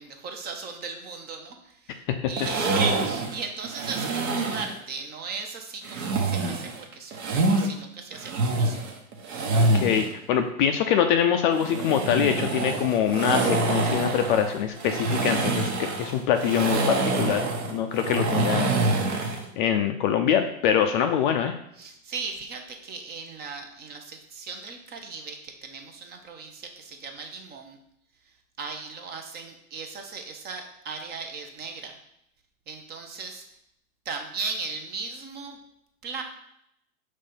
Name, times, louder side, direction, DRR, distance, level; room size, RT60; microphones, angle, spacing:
voice 1, 0.0-8.8 21.7-27.8 28.2-32.0 32.7-33.4 34.0-35.6 36.0-36.2, right 4 dB, 20° right, 4 dB, 0.8 m, -37 dB
sound 1, 2.4-4.8 5.8-7.7 8.1-10.1 11.5-19.5, right 2 dB, 50° right, 1.3 m, -26 dB
voice 2, 9.5-19.3 19.6-21.5, left 8 dB, 35° left, 6 dB, 0.5 m, -24 dB
5.4 x 3.3 x 5.3 m, 0.76 s
hypercardioid pair, 115°, 43 cm